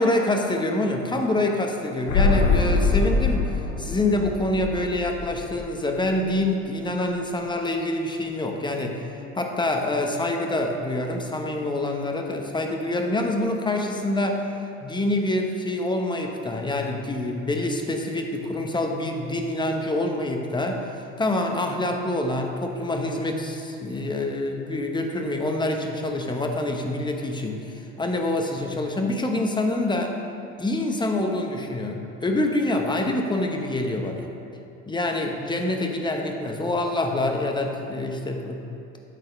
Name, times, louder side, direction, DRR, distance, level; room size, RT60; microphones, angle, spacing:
voice 1, 0.0-3.5 3.8-14.5 14.8-30.2 30.6-34.3 34.9-38.6, left 1 dB, 15° left, 3 dB, 0.9 m, -26 dB
sound 1, 2.1-5.8 6.1-6.2, left 4 dB, 80° left, 1.2 m, -23 dB
9.2 x 3.9 x 5.3 m, 2.8 s
supercardioid pair, 80°, 29 cm